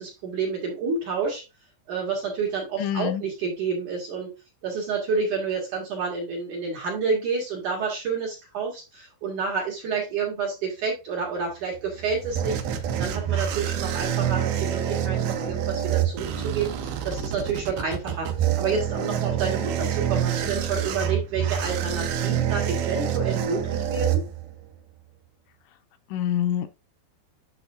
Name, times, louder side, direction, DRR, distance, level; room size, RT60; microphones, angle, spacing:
voice 1, 0.0-1.4 1.9-4.3 4.6-18.3 18.6-24.2, right 5 dB, 55° right, 2.4 m, -29 dB
voice 2, 2.8-3.2 26.1-26.7, left 10 dB, 85° left, 2.8 m, -25 dB
sound 1, 11.8-24.7, right 10 dB, 80° right, 2.2 m, -27 dB
7.9 x 6.3 x 2.6 m
omnidirectional pair, 5.4 m